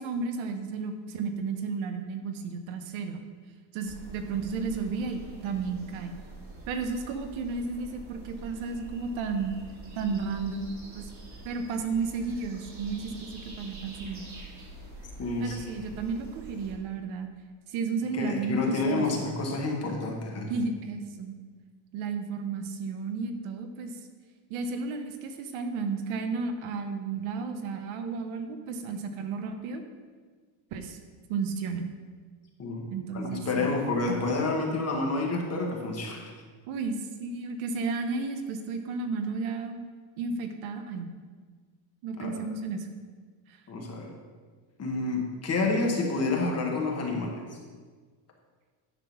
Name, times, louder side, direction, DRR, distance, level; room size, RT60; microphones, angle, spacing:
voice 1, 0.0-3.2 3.7-6.1 6.7-9.6 10.0-10.7 10.9-11.1 11.4-14.3 15.4-17.3 17.7-19.1 20.5-21.3 21.9-24.0 24.5-29.8 30.7-31.0 31.3-31.9 32.9-33.7 36.7-39.8 40.2-41.1 42.0-42.9 43.5-43.6, right 4 dB, 75° right, 6 dB, 1.0 m, -33 dB
sound 1, 3.8-16.8, right 2 dB, 35° right, 1.6 m, -46 dB
voice 2, 15.2-15.6 18.1-20.5 32.6-32.9 33.1-36.3 42.2-42.4 43.7-44.1 44.8-47.6, left 3 dB, 30° left, 0 dB, 1.3 m, -29 dB
9.7 x 3.8 x 5.9 m, 1.5 s
cardioid pair, 155°, 49 cm